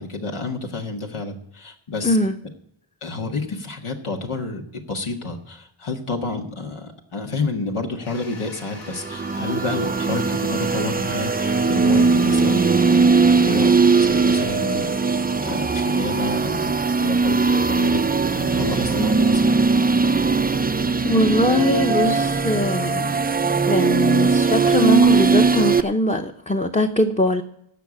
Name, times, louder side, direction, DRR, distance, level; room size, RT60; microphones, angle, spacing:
voice 1, 0.0-2.2 3.0-13.0 13.3-18.0 18.3-19.6, left 3 dB, 85° left, 2 dB, 1.9 m, -30 dB
Toilet flush, 8.0-24.8, left 2 dB, 65° left, 1.8 m, -44 dB
sound 1, 8.9-25.8, right 4 dB, 20° right, 0.4 m, -19 dB
voice 2, 21.0-23.2 23.6-27.4, left 1 dB, 15° left, 7 dB, 0.8 m, -21 dB
14.5 x 5.8 x 8.7 m, 0.73 s
wide cardioid pair, 60°, 49 cm